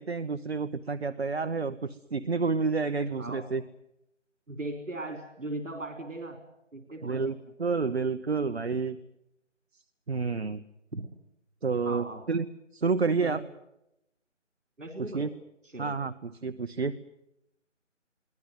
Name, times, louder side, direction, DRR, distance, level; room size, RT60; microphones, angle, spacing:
voice 1, 0.0-3.6 7.0-9.0 10.1-10.6 11.6-12.4 12.7-13.4 15.1-15.3 15.8-17.0, right 4 dB, 55° right, 11 dB, 1.0 m, -29 dB
voice 2, 4.5-6.4 6.7-7.4 10.9-11.0 11.8-12.2 13.2-13.4 14.8-15.3 15.6-15.9, right 2 dB, 85° right, 5 dB, 3.7 m, -38 dB
23.0 x 17.5 x 9.5 m, 0.83 s
figure-of-eight pair, 170°, 37 cm